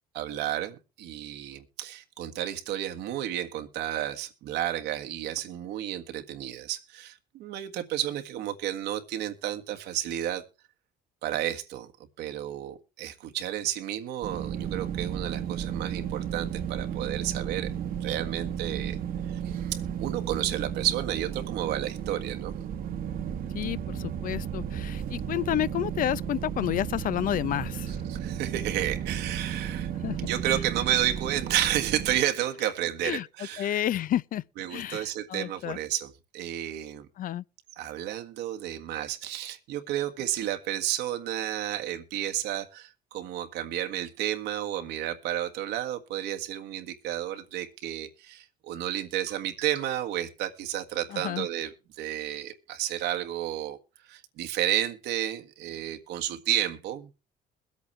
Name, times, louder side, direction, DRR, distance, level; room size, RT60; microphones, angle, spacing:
voice 1, 0.1-10.4 11.2-11.9 12.2-17.7 18.0-19.0 19.3-19.6 20.0-22.6 27.9-29.9 30.3-33.8 34.6-37.1 37.7-57.1, right 12 dB, 85° right, 1.6 m, -32 dB
sound 1, 14.2-32.2, right 9 dB, 60° right, 1.3 m, -34 dB
voice 2, 23.5-27.9 30.0-30.2 30.5-30.6 33.0-33.3 33.6-34.4 34.7-35.8 37.2-37.4 51.1-51.5, left 12 dB, 55° left, 0.6 m, -30 dB
22.0 x 8.3 x 3.2 m
cardioid pair, 110°, 17 cm